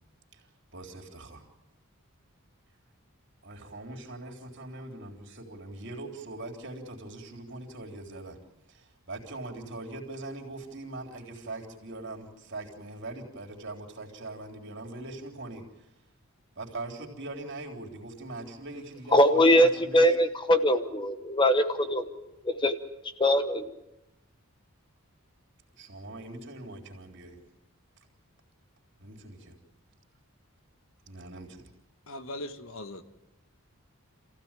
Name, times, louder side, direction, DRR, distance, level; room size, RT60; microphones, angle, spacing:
voice 1, 0.7-1.4 3.4-8.4 8.7-15.7 16.6-20.0 25.7-27.4 29.0-29.6 31.1-31.7, right 2 dB, 55° right, 3.7 m, -41 dB
voice 2, 19.1-23.8, equal, 20° left, 1.0 m, -23 dB
voice 3, 32.1-33.0, left 1 dB, 70° left, 1.5 m, -39 dB
27.0 x 16.0 x 9.0 m
head